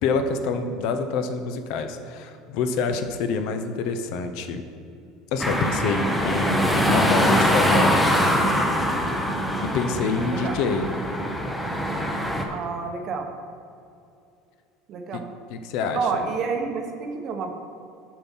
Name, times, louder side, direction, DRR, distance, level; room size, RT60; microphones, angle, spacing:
voice 1, 0.0-4.6 5.3-7.9 9.6-10.9 15.1-15.2 15.5-16.0, left 4 dB, 55° left, 7 dB, 0.6 m, -26 dB
sound 1, 5.4-12.4, equal, 5° left, 0.7 m, -23 dB
voice 2, 10.1-10.6 12.5-13.3 14.9-15.3 15.9-17.5, right 5 dB, 35° right, 4 dB, 0.9 m, -29 dB
7.2 x 6.0 x 5.5 m, 2.5 s
cardioid pair, 175°, 0 cm